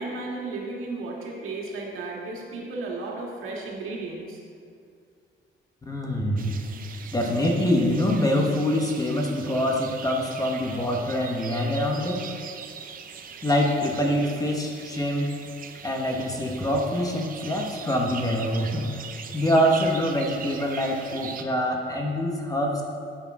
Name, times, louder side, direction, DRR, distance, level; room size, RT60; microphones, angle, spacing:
voice 1, 0.0-4.4, right 3 dB, 85° right, -2 dB, 1.8 m, -34 dB
voice 2, 5.9-6.5 7.1-12.2 13.4-15.3 15.8-18.9 19.3-22.8, equal, 15° left, 0 dB, 0.9 m, -25 dB
sound 1, 6.4-21.4, right 6 dB, 45° right, 0.6 m, -41 dB
9.6 x 8.4 x 3.6 m, 2.3 s
cardioid pair, 170°, 21 cm